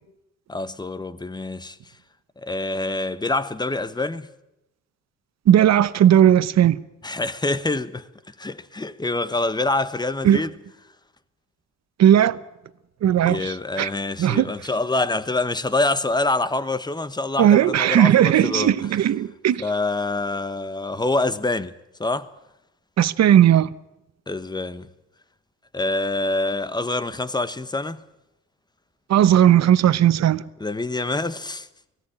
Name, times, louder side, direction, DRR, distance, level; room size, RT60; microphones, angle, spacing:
voice 1, 0.5-1.8 2.4-4.3 7.0-8.0 8.4-10.5 13.2-18.9 19.6-21.7 22.0-22.3 24.3-24.9 25.7-28.0 30.6-31.7, left 2 dB, 15° left, 1.1 m, -26 dB
voice 2, 5.5-6.8 10.2-10.4 12.0-12.4 13.0-13.9 14.2-14.5 17.4-19.6 23.0-23.7 29.1-30.4, right 11 dB, 60° right, 0.9 m, -16 dB
19.0 x 16.5 x 9.9 m
cardioid pair, 90°, 30 cm